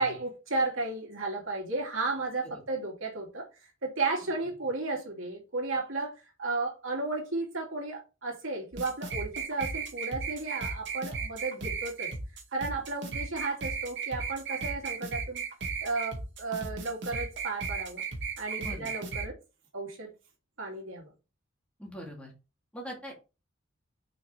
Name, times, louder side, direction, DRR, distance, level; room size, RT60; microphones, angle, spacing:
voice 1, 0.0-3.5 3.8-12.1 12.5-15.4 15.8-18.0 18.4-19.4 19.7-20.1 20.6-21.1, right 3 dB, 85° right, 2.7 m, -33 dB
sound 1, 8.7-19.3, right 4 dB, 65° right, 2.1 m, -35 dB
voice 2, 18.6-18.9 21.8-22.3 22.7-23.2, equal, 5° left, 2.6 m, -42 dB
6.4 x 5.7 x 3.3 m
head